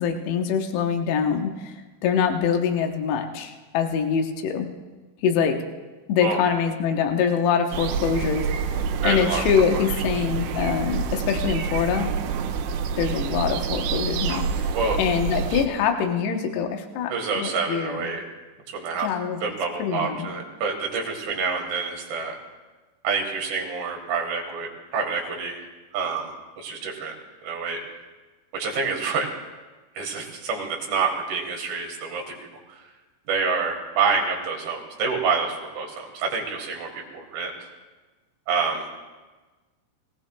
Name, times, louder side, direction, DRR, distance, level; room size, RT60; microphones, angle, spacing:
voice 1, 0.0-4.7 5.2-5.6 6.1-8.5 9.0-12.1 13.0-14.7 15.0-18.1 19.0-19.4 19.8-20.3, left 7 dB, 75° left, 4 dB, 2.7 m, -24 dB
sound 1, 7.7-15.7, right 6 dB, 85° right, 3.1 m, -27 dB
voice 2, 9.0-9.4 9.7-9.8 14.7-15.0 17.1-18.2 18.7-19.1 19.4-22.4 23.0-25.6 25.9-27.1 27.4-27.8 28.5-29.3 29.9-32.9 33.3-37.7 38.5-38.9, right 5 dB, 65° right, 0 dB, 3.3 m, -27 dB
22.5 x 16.5 x 2.3 m, 1.3 s
omnidirectional pair, 5.8 m